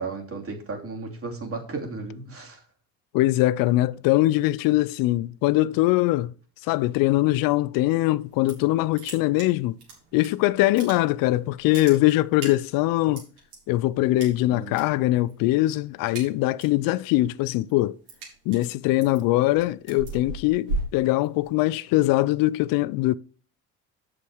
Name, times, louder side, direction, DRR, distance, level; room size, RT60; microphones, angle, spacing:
voice 1, 0.0-2.6 14.4-14.8, right 3 dB, 40° right, 2.9 m, -34 dB
voice 2, 3.1-6.3 6.6-9.8 10.1-13.3 13.7-18.0 18.5-23.1, left 17 dB, 70° left, 0.5 m, -22 dB
sound 1, 8.2-8.7 8.9-10.3 10.6-11.3 11.6-13.6 14.2-14.8 15.1-15.4 15.7-16.8 17.2-21.7, right 2 dB, 85° right, 3.8 m, -36 dB
7.0 x 6.7 x 4.7 m
hypercardioid pair, 65°, 35 cm